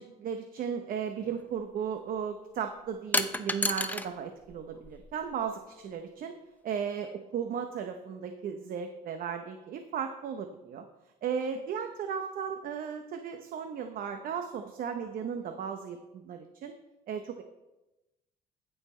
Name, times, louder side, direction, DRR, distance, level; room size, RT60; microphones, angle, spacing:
voice 1, 0.0-6.3 6.6-10.8 11.2-16.7 17.1-17.4, right 7 dB, 55° right, 7 dB, 0.7 m, -35 dB
sound 1, 1.2-1.4 3.1-4.1 4.4-5.3, left 2 dB, 10° left, 0.6 m, -31 dB
14.5 x 5.6 x 4.3 m, 1.0 s
cardioid pair, 110°, 17 cm